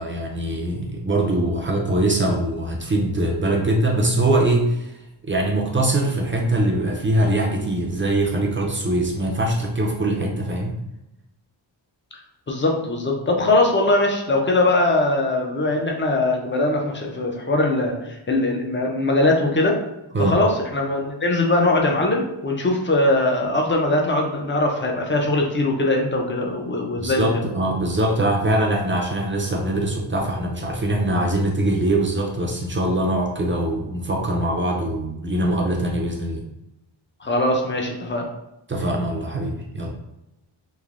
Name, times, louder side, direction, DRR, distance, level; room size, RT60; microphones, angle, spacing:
voice 1, 0.0-4.9 5.2-10.7 20.1-20.4 27.0-36.4 38.7-39.9, right 1 dB, 25° right, -1 dB, 0.4 m, -22 dB
voice 2, 12.5-19.8 20.2-27.3 37.2-38.3, left 2 dB, 25° left, 1 dB, 0.5 m, -21 dB
3.2 x 2.1 x 2.4 m, 0.90 s
cardioid pair, 85°, 47 cm